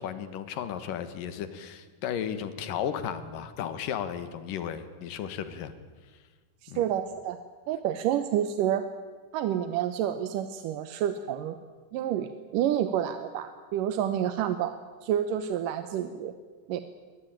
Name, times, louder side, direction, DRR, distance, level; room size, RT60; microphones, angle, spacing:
voice 1, 0.0-5.7 6.7-6.8, left 8 dB, 85° left, 11 dB, 3.1 m, -34 dB
voice 2, 6.6-7.4 7.7-8.9 9.3-11.6 11.9-16.3 16.7-16.8, right 10 dB, 80° right, 10 dB, 2.5 m, -29 dB
23.0 x 19.5 x 9.0 m, 1.4 s
omnidirectional pair, 3.8 m